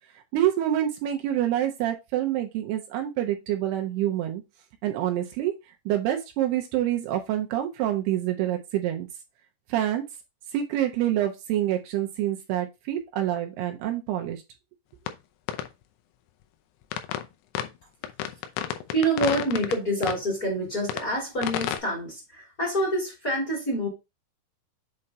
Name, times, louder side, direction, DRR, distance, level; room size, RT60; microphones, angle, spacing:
voice 1, 0.3-4.4 4.8-5.5 5.9-9.1 9.7-10.0 10.5-14.4, right 12 dB, 80° right, 2.7 m, -27 dB
sound 1, 15.1-15.2 15.5-15.7 16.9-17.3 17.6-17.7 18.0-19.7 20.0-20.2 20.9-21.0 21.4-21.8, left 10 dB, 80° left, 2.8 m, -30 dB
voice 2, 18.9-23.9, right 1 dB, 25° left, 2.8 m, -27 dB
7.8 x 4.3 x 2.8 m
omnidirectional pair, 4.9 m